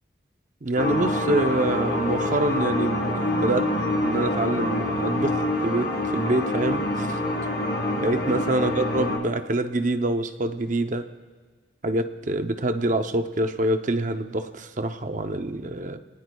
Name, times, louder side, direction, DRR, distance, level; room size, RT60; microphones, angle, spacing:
voice 1, 0.6-3.7 4.0-7.2 7.9-11.1 11.8-16.0, right 2 dB, 45° right, 8 dB, 0.7 m, -26 dB
sound 1, 0.8-9.2, left 1 dB, 65° left, 2.0 m, -26 dB
27.5 x 19.0 x 2.3 m, 1.3 s
head